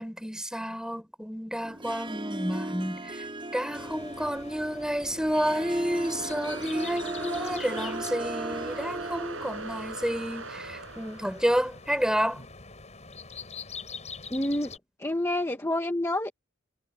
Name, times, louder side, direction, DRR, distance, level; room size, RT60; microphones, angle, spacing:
voice 1, 0.0-3.3 3.5-12.5, equal, 5° right, 6.2 m, -30 dB
Harp, 1.6-9.5, right 2 dB, 25° right, 5.5 m, -37 dB
sound 1, 3.7-14.8, left 5 dB, 35° left, 7.7 m, -45 dB
sound 2, 4.7-11.8, right 3 dB, 75° right, 7.2 m, -40 dB
voice 2, 14.3-14.7 15.0-16.3, left 1 dB, 15° left, 1.7 m, -28 dB
head